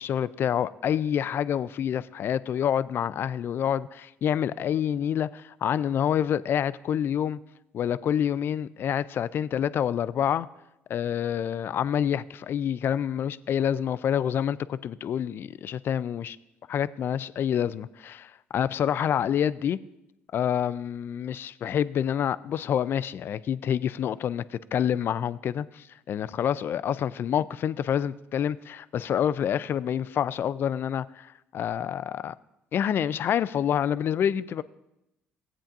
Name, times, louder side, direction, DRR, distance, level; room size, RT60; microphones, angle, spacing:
voice 1, 0.0-7.4 7.7-10.5 10.9-16.4 16.7-19.8 20.3-32.3 32.7-34.6, left 9 dB, 55° left, 0.4 m, -27 dB
15.0 x 8.6 x 2.6 m
supercardioid pair, 75°, 4 cm